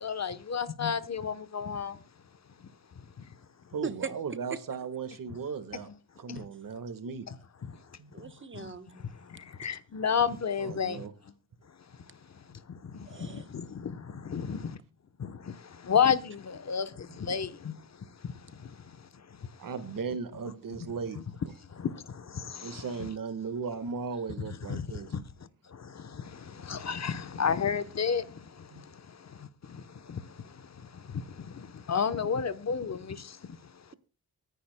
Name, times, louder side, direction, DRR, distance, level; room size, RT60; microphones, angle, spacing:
voice 1, 0.0-1.9 9.6-11.0 13.2-13.9 14.3-14.6 15.2-15.3 15.9-16.9 17.3-17.7 23.0-23.1 24.7-24.8 26.7-28.2 30.1-30.2 31.9-33.2, left 7 dB, 45° left, 1.0 m, -29 dB
voice 2, 3.7-5.9 6.2-7.2 8.0-8.1 10.6-11.1 14.3-14.5 17.1-17.2 19.6-21.2 22.6-25.1 28.7-28.9, right 5 dB, 65° right, 1.6 m, -37 dB
voice 3, 8.1-9.1 9.6-9.7 13.0-13.5, right 5 dB, 35° right, 1.1 m, -39 dB
23.5 x 10.0 x 2.2 m
wide cardioid pair, 105°, 36 cm